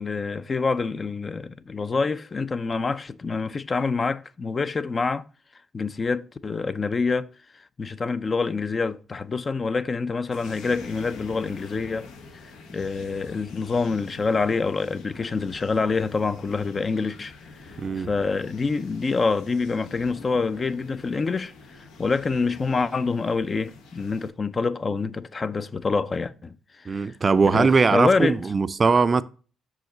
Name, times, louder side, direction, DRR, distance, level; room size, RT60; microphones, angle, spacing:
voice 1, 0.0-5.2 5.7-7.3 7.8-12.1 12.3-27.1 27.5-28.4, left 4 dB, 35° left, 0.4 m, -26 dB
sound 1, 10.3-24.3, left 4 dB, 90° left, 1.0 m, -46 dB
voice 2, 17.8-18.1 26.9-29.2, right 4 dB, 35° right, 0.4 m, -20 dB
6.0 x 4.9 x 3.8 m
cardioid pair, 90°, 0 cm